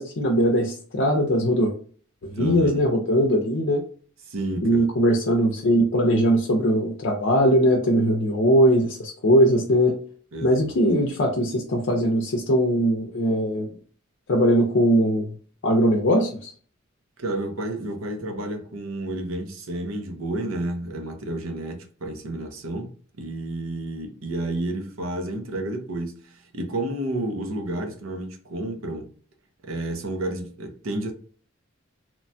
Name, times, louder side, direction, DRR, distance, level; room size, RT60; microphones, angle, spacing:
voice 1, 0.0-1.7 2.2-3.8 4.6-9.9 10.4-13.7 14.3-15.3 15.6-16.5, equal, 65° left, 0.5 m, -20 dB
voice 2, 2.3-2.9 4.3-4.9 10.3-10.8 17.2-22.9 23.2-29.1 29.6-31.1, right 1 dB, 85° right, 0.6 m, -31 dB
3.0 x 2.1 x 2.6 m
head